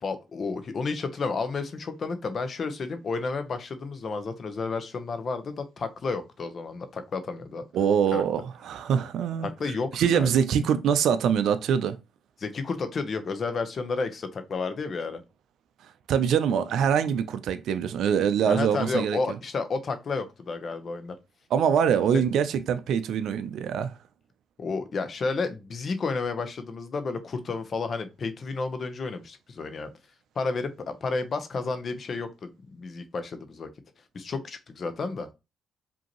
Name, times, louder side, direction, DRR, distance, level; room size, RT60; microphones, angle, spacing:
voice 1, 0.0-7.6 8.1-8.2 9.4-10.3 12.4-15.2 18.5-21.2 22.1-22.2 24.6-29.9 30.4-33.7 34.1-35.3, left 4 dB, 45° left, 0.7 m, -31 dB
voice 2, 7.7-9.5 9.9-12.0 16.1-19.4 21.5-23.9, right 8 dB, 75° right, 0.4 m, -24 dB
5.2 x 2.7 x 2.9 m
cardioid pair, 90°, 0 cm